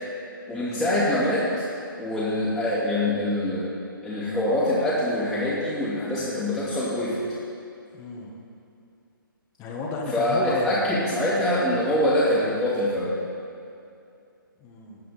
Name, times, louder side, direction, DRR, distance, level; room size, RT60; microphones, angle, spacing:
voice 1, 0.5-1.6 2.0-3.7 4.0-7.2 10.1-13.1, left 1 dB, ahead, -15 dB, 2.5 m, -24 dB
voice 2, 7.9-8.3 9.6-10.9 14.6-15.0, left 3 dB, 20° left, -2 dB, 1.6 m, -32 dB
19.0 x 7.6 x 4.3 m, 2.5 s
figure-of-eight pair, 140°, 12 cm